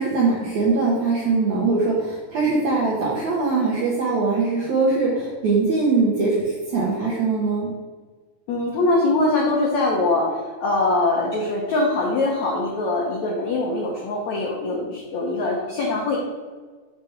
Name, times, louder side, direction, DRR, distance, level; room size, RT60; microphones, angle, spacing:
voice 1, 0.0-7.7, right 3 dB, 75° right, -5 dB, 1.7 m, -21 dB
voice 2, 8.5-16.2, left 2 dB, 80° left, -3 dB, 1.6 m, -22 dB
6.6 x 3.4 x 5.7 m, 1.4 s
omnidirectional pair, 4.5 m